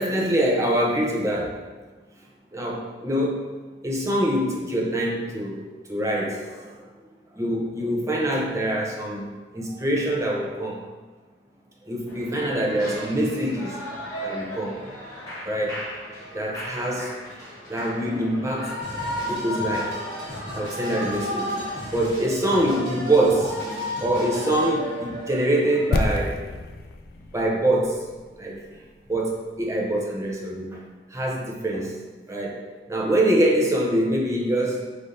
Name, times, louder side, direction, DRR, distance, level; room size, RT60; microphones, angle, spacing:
voice 1, 0.0-1.6 2.5-3.4 3.8-6.9 7.4-9.2 9.5-10.8 11.9-13.8 14.2-15.0 15.4-15.8 16.3-17.1 17.7-18.9 19.3-20.0 20.5-21.5 21.9-23.7 24.0-26.4 27.3-28.0 28.4-28.5 29.1-30.8 31.1-32.0 32.3-32.6 32.9-34.9, right 1 dB, 15° right, -2 dB, 0.6 m, -24 dB
Shout / Cheering, 12.1-25.9, left 1 dB, 20° left, 1.5 m, -34 dB
Drum kit, 18.8-24.7, equal, 75° right, 1.4 m, -39 dB
sound 1, 25.9-29.9 30.1-30.2, left 2 dB, 55° left, 0.3 m, -30 dB
5.2 x 3.3 x 2.6 m, 1.3 s
head